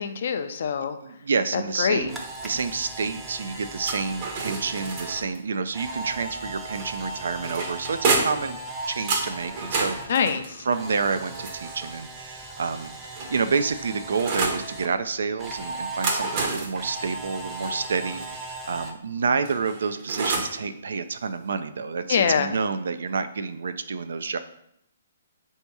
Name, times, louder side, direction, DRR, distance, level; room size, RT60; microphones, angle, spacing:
voice 1, 0.0-1.0 1.5-2.1 10.1-10.4 22.1-22.5, left 6 dB, 60° left, 9 dB, 0.4 m, -24 dB
voice 2, 1.0-8.6 8.9-10.0 10.6-12.9 13.3-24.4, right 5 dB, 75° right, 10 dB, 0.3 m, -29 dB
Camera, 1.7-10.1 10.4-14.9 15.4-18.9, right 2 dB, 10° right, 0.5 m, -38 dB
sound 1, 3.8-5.4 6.7-8.5 9.1-12.0 12.8-14.7 15.8-18.3 19.4-20.6, right 3 dB, 40° right, 0.9 m, -30 dB
3.5 x 2.7 x 4.6 m, 0.76 s
hypercardioid pair, 150°, 0 cm